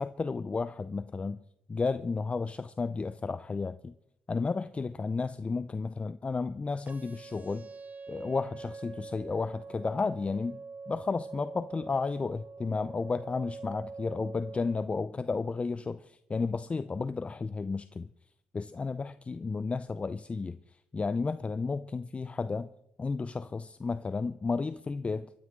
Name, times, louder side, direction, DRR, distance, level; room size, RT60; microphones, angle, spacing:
voice 1, 0.0-1.4 1.7-3.9 4.3-7.7 8.1-10.6 10.9-18.1 18.5-22.7 23.0-25.3, left 4 dB, 30° left, 0.6 m, -32 dB
sound 1, 6.9-14.9, right 4 dB, 40° right, 1.3 m, -45 dB
26.0 x 14.0 x 3.7 m
supercardioid pair, 60°, 4 cm